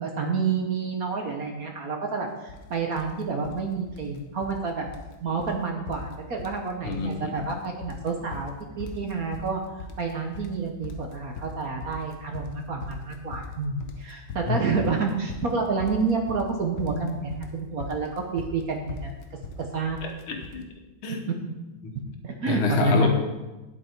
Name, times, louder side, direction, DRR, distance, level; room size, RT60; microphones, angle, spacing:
voice 1, 0.0-4.9 5.2-19.2 19.6-20.0 21.3-21.4 22.2-23.1, right 4 dB, 55° right, 3 dB, 1.2 m, -29 dB
sound 1, 2.5-2.7 3.0-3.6 3.9-4.6 4.9-5.1 5.4-5.6 5.9-6.6 6.9-7.5 7.8-20.6, left 3 dB, 60° left, 1.4 m, -39 dB
voice 2, 6.8-7.3 14.5-14.6 20.0-20.6 21.0-21.2 22.5-23.1, left 4 dB, 80° left, 3 dB, 2.1 m, -27 dB
9.8 x 8.1 x 4.5 m, 1.1 s
omnidirectional pair, 2.3 m